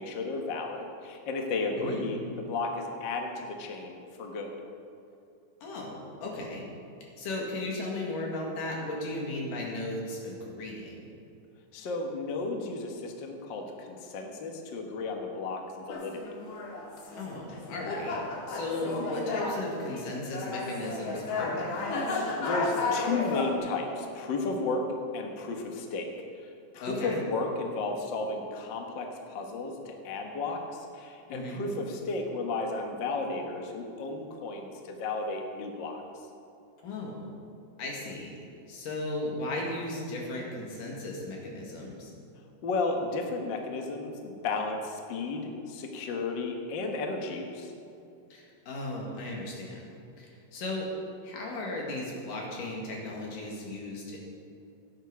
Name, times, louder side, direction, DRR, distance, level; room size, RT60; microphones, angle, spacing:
voice 1, 0.0-4.5 11.7-16.2 22.4-24.8 25.1-26.1 26.7-36.0 42.6-47.7, left 3 dB, 50° left, 2 dB, 1.4 m, -33 dB
voice 2, 5.6-6.7 7.2-11.0 17.2-21.9 26.8-27.2 31.3-31.6 36.8-37.3 37.8-38.3 38.7-42.1 48.3-49.8 50.2-50.9 51.2-54.2, left 2 dB, 90° left, -2 dB, 3.7 m, -36 dB
sound 1, 15.9-23.6, left 3 dB, 65° left, 2.7 m, -33 dB
17.0 x 9.1 x 4.8 m, 2.6 s
omnidirectional pair, 3.7 m